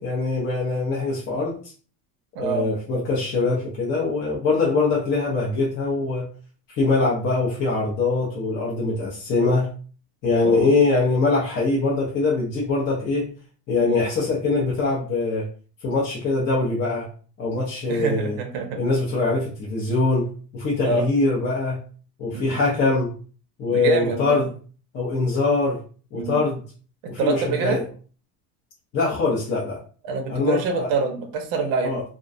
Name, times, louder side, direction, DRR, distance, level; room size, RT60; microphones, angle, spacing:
voice 1, 0.0-1.6 2.4-6.3 6.7-9.7 10.2-13.3 13.7-15.5 15.8-17.1 17.4-18.4 18.8-21.8 22.2-23.1 23.6-24.5 24.9-25.8 26.1-26.6 27.1-27.8 28.9-29.8 30.3-30.9 31.8-32.0, left 3 dB, 25° left, -5 dB, 0.4 m, -23 dB
voice 2, 17.9-18.8 20.8-21.1 22.3-22.6 23.7-24.4 26.1-26.4 27.2-27.8 30.0-32.0, right 4 dB, 50° right, 3 dB, 0.6 m, -26 dB
2.3 x 2.1 x 2.5 m, 0.40 s
cardioid pair, 150°, 44 cm